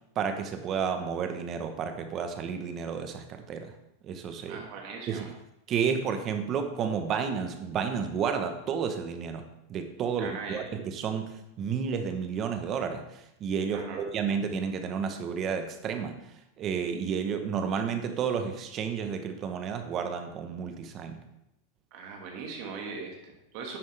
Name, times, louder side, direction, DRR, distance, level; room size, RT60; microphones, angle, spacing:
voice 1, 0.2-3.7 4.0-4.7 5.1-5.3 5.7-9.4 9.7-13.1 13.4-16.2 16.6-21.2, right 6 dB, 25° right, 7 dB, 0.9 m, -31 dB
voice 2, 4.4-5.3 10.2-10.7 13.7-14.0 21.9-23.8, right 4 dB, 45° right, 1 dB, 1.8 m, -40 dB
10.5 x 7.9 x 3.3 m, 0.85 s
supercardioid pair, 160°, 0 cm